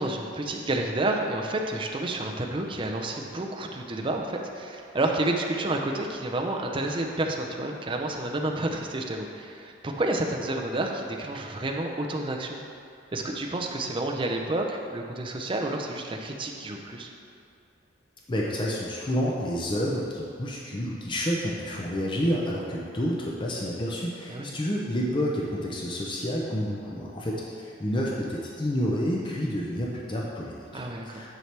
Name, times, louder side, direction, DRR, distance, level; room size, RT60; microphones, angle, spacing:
voice 1, 0.0-12.6 13.1-17.1 24.3-24.5 30.7-31.3, right 2 dB, 25° right, 2 dB, 0.5 m, -30 dB
voice 2, 18.3-31.3, equal, 25° left, -3 dB, 0.6 m, -29 dB
9.2 x 4.5 x 3.3 m, 2.4 s
head